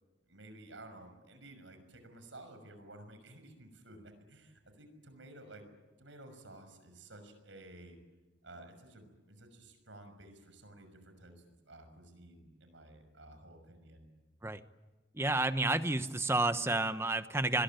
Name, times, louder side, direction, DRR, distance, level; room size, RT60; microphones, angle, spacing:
voice 1, 0.3-5.6 6.0-8.0 8.4-14.1, right 1 dB, 75° right, 8 dB, 6.2 m, -53 dB
voice 2, 15.1-17.6, right 2 dB, 15° right, 11 dB, 0.9 m, -30 dB
27.0 x 22.0 x 9.1 m, 1.1 s
head